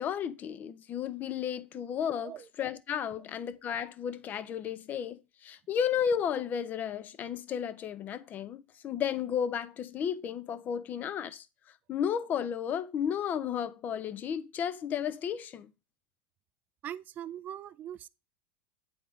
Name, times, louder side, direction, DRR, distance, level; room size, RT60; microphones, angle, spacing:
voice 1, 0.0-2.3 2.6-11.5 11.9-15.7, left 8 dB, 30° left, 0.6 m, -33 dB
voice 2, 16.8-18.1, right 10 dB, 30° right, 0.4 m, -41 dB
8.5 x 3.6 x 3.7 m
supercardioid pair, 125°, 5 cm